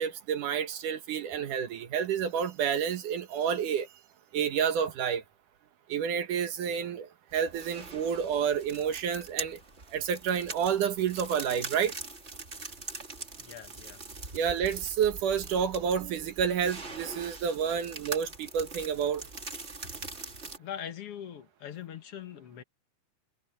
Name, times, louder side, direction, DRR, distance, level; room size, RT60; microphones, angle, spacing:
voice 1, 0.0-3.9 4.3-5.2 5.9-9.6 9.9-11.9 14.3-19.2, right 7 dB, 65° right, 2.6 m, -29 dB
sound 1, 7.3-20.6, right 3 dB, 25° right, 1.8 m, -43 dB
voice 2, 13.4-14.0 20.6-22.6, left 9 dB, 50° left, 2.0 m, -42 dB
omnidirectional pair, 4.2 m